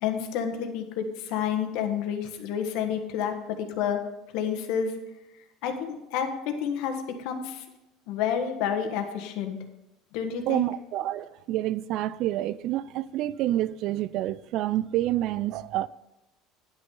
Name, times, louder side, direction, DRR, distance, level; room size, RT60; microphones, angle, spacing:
voice 1, 0.0-4.0 4.3-5.0 5.6-7.6 8.1-9.6 10.1-10.7, left 8 dB, 70° left, 1.4 m, -29 dB
voice 2, 10.5-15.9, right 14 dB, 55° right, 0.4 m, -28 dB
10.0 x 6.5 x 5.5 m
supercardioid pair, 130°, 0 cm